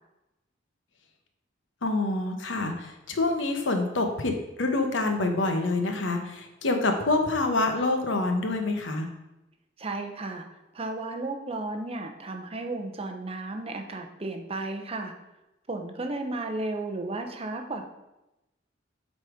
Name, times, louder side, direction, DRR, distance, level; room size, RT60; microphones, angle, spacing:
voice 1, 1.8-9.1, left 2 dB, 75° left, 5 dB, 1.1 m, -26 dB
voice 2, 9.8-10.5 10.7-15.1 15.7-17.9, right 2 dB, 30° right, 4 dB, 0.8 m, -34 dB
7.9 x 4.2 x 5.0 m, 0.95 s
head